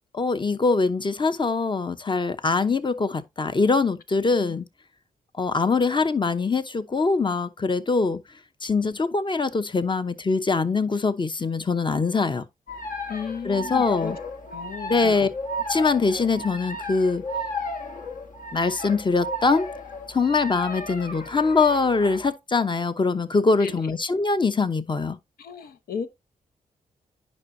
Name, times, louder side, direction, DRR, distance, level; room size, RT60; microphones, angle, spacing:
voice 1, 0.1-4.6 5.4-8.2 8.6-12.4 13.4-14.2 14.9-15.3 15.7-17.2 18.5-19.7 20.1-25.2, left 4 dB, 30° left, 0.9 m, -23 dB
sound 1, 12.7-22.3, left 1 dB, 60° left, 1.5 m, -33 dB
voice 2, 13.1-14.1 14.5-15.3 23.6-23.8 25.4-26.1, left 7 dB, 80° left, 0.9 m, -34 dB
9.7 x 5.5 x 2.7 m
cardioid pair, 60°, 15 cm